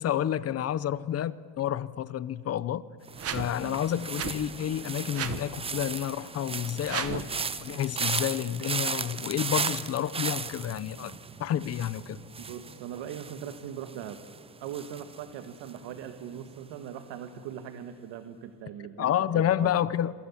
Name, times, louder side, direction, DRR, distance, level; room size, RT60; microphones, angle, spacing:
voice 1, 0.0-2.8 3.3-7.3 7.6-11.1 11.4-12.2 19.0-20.1, left 10 dB, 35° left, 18 dB, 0.7 m, -29 dB
sound 1, 3.1-16.1 16.4-16.8, right 5 dB, 15° right, 0.6 m, -36 dB
sound 2, 3.2-3.5 4.2-4.3 5.1-5.4 6.8-7.3, right 8 dB, 35° right, 1.3 m, -33 dB
voice 2, 12.4-14.2 14.6-19.8, right 9 dB, 70° right, 8 dB, 1.7 m, -40 dB
27.0 x 23.5 x 7.2 m, 2.4 s
cardioid pair, 145°, 44 cm